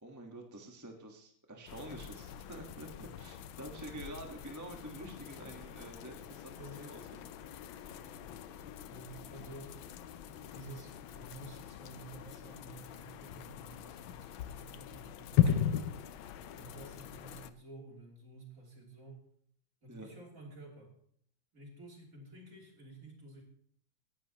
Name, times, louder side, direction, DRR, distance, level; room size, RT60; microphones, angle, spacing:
voice 1, 0.0-7.3 15.4-15.6 15.9-16.0 19.9-20.1, right 1 dB, 10° right, 2 dB, 0.9 m, -48 dB
sound 1, 1.7-17.5, left 9 dB, 75° left, 1.4 m, -39 dB
voice 2, 6.6-6.9 8.9-9.8 10.2-15.7 16.5-19.2 19.8-20.9 21.5-23.4, right 2 dB, 40° right, -1 dB, 3.3 m, -51 dB
18.0 x 11.0 x 2.9 m, 0.65 s
omnidirectional pair, 2.2 m